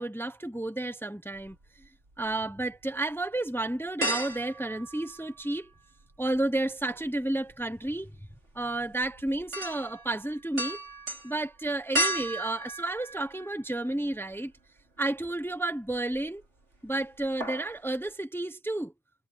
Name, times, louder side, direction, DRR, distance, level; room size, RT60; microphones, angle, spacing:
voice 1, 0.0-1.9 2.2-5.7 6.2-8.1 8.5-10.8 11.2-14.5 15.0-16.4 16.8-18.9, right 2 dB, 5° left, 0.4 m, -31 dB
sound 1, 1.4-2.3 2.8-2.9 4.0-5.7 6.0-13.9 14.3-14.4 15.9-16.4 16.7-16.9 17.2-17.8 18.1-18.2, right 1 dB, 45° right, 4.6 m, -35 dB
omnidirectional pair, 1.7 m